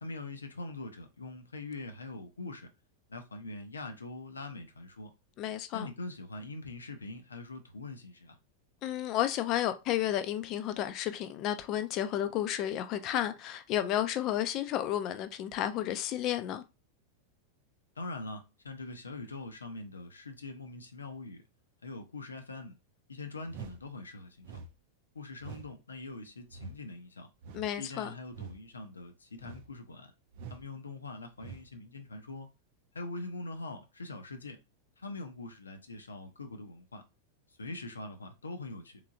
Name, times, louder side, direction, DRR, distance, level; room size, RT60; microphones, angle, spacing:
voice 1, 0.0-2.7 3.1-5.1 5.7-8.4 18.0-21.4 21.8-22.7 23.1-24.6 25.1-27.3 27.8-30.1 30.5-32.5 32.9-34.6 35.0-37.0 37.6-39.0, left 2 dB, 75° left, 0.7 m, -43 dB
voice 2, 5.4-5.9 8.8-16.6 27.5-28.1, left 12 dB, 40° left, 0.5 m, -32 dB
sound 1, 23.5-23.8 24.4-24.7 25.4-25.7 26.5-26.8 27.4-27.7 28.3-28.6 29.4-29.7 30.3-30.6 31.4-31.7, right 6 dB, 50° right, 0.5 m, -45 dB
3.7 x 3.2 x 2.5 m
figure-of-eight pair, 90°, 0 cm